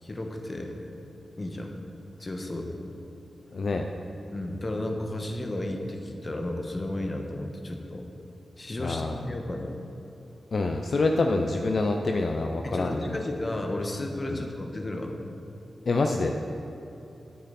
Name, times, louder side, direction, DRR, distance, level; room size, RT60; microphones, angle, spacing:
voice 1, 0.0-0.7 1.4-1.7 2.2-2.8 4.3-8.1 8.6-9.7 12.6-15.2, left 1 dB, 40° left, 3 dB, 1.4 m, -33 dB
voice 2, 3.5-3.9 8.8-9.3 10.5-13.2 14.3-14.4 15.9-16.5, left 3 dB, 65° left, 3 dB, 0.6 m, -26 dB
10.0 x 8.3 x 4.2 m, 3.0 s
cardioid pair, 45°, 0 cm